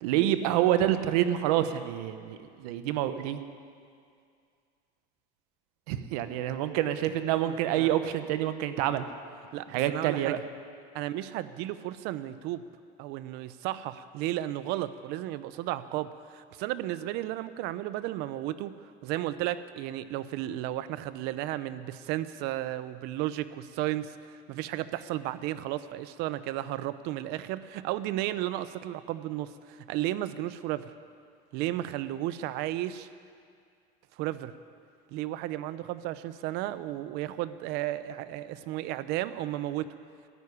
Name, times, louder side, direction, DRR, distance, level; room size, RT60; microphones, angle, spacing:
voice 1, 0.0-3.4 5.9-9.0 9.7-10.4, right 12 dB, 90° right, 11 dB, 0.9 m, -27 dB
voice 2, 7.5-7.9 9.5-10.4 10.9-12.6 13.0-30.9 31.5-33.1 34.2-34.5 35.1-39.9, right 14 dB, 60° right, 14 dB, 0.7 m, -34 dB
13.5 x 9.2 x 9.9 m, 2.3 s
cardioid pair, 150°, 19 cm